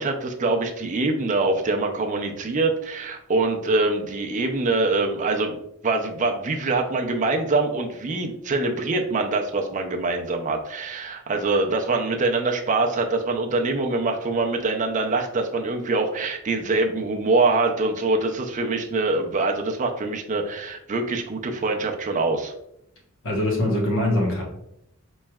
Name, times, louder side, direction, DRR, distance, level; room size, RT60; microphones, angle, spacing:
voice 1, 0.0-5.6 5.8-22.5, right 3 dB, 35° right, 3 dB, 0.4 m, -24 dB
voice 2, 23.2-24.4, left 1 dB, 60° left, -2 dB, 1.1 m, -22 dB
4.4 x 3.1 x 2.3 m, 0.79 s
head